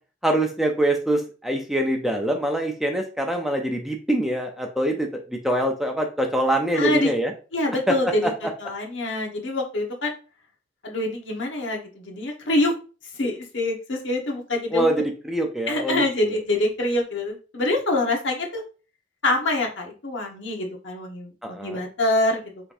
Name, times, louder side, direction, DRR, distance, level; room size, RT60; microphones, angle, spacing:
voice 1, 0.2-7.3 7.9-8.0 8.2-8.3 14.7-16.0 21.4-21.8, right 1 dB, ahead, 2 dB, 0.5 m, -24 dB
voice 2, 6.7-7.1 7.5-8.3 8.6-10.1 10.8-12.7 13.2-15.0 15.7-18.6 19.2-22.4, left 2 dB, 90° left, 1 dB, 1.2 m, -25 dB
5.0 x 3.4 x 2.6 m, 0.35 s
head